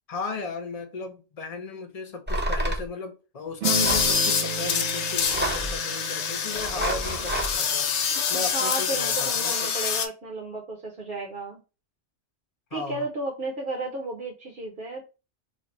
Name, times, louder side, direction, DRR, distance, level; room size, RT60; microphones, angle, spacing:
voice 1, 0.1-7.9 8.3-9.7 12.7-13.1, left 4 dB, 35° left, 0.7 m, -36 dB
sound 1, 2.3-2.8 3.8-4.1 5.2-5.8 6.6-7.5, right 1 dB, 10° right, 0.5 m, -28 dB
sound 2, 3.6-10.1, left 7 dB, 75° left, 0.9 m, -26 dB
sound 3, 3.6-8.5, right 8 dB, 80° right, 1.0 m, -35 dB
voice 2, 6.7-7.2 8.1-11.6 12.7-15.0, right 2 dB, 55° right, 1.0 m, -33 dB
3.2 x 2.3 x 4.1 m
omnidirectional pair, 1.2 m